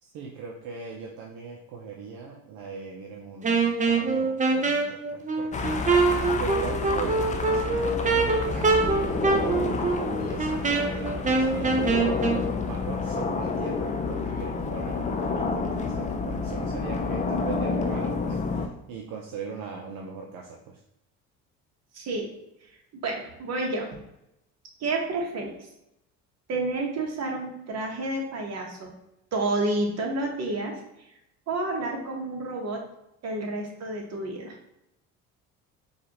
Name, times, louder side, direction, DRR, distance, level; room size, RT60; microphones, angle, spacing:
voice 1, 0.0-5.8 6.3-12.1 12.5-20.8, right 5 dB, 70° right, 0 dB, 0.7 m, -39 dB
Wind instrument woodwind instrument, 3.4-12.4, right 3 dB, 20° right, 0.6 m, -24 dB
sound 1, 5.5-18.7, left 4 dB, 20° left, 0.4 m, -29 dB
voice 2, 21.9-22.3 22.9-23.9 24.8-25.6 26.5-28.9 29.3-30.8 31.5-32.8 33.2-34.5, right 2 dB, 45° right, 0 dB, 1.2 m, -30 dB
4.7 x 2.4 x 2.9 m, 0.84 s
supercardioid pair, 80°, 35 cm